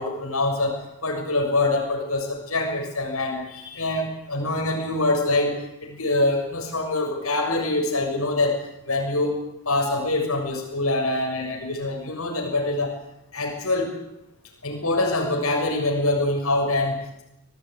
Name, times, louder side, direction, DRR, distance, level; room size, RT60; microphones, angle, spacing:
voice 1, 0.0-8.6 8.8-9.4 9.7-13.0 13.3-13.9 14.6-17.2, left 2 dB, 75° left, 1 dB, 6.9 m, -25 dB
25.0 x 18.0 x 9.7 m, 0.84 s
head